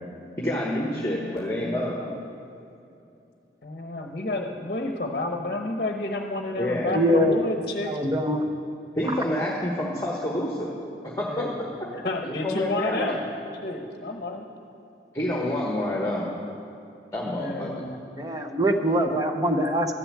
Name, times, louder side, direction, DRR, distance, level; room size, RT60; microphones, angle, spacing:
voice 1, 0.4-2.0 6.5-7.0 8.9-10.7 11.0-11.5 12.2-13.2 15.1-16.3 17.1-17.9, left 1 dB, 15° left, -3 dB, 1.2 m, -28 dB
voice 2, 1.0-2.2 3.6-7.9 11.3-13.3 13.6-14.5 15.4-15.5 17.2-18.0, left 2 dB, 50° left, 3 dB, 0.9 m, -31 dB
voice 3, 6.9-7.4 7.8-8.5 18.2-19.9, equal, 20° right, 5 dB, 0.8 m, -23 dB
13.0 x 6.9 x 8.5 m, 2.7 s
head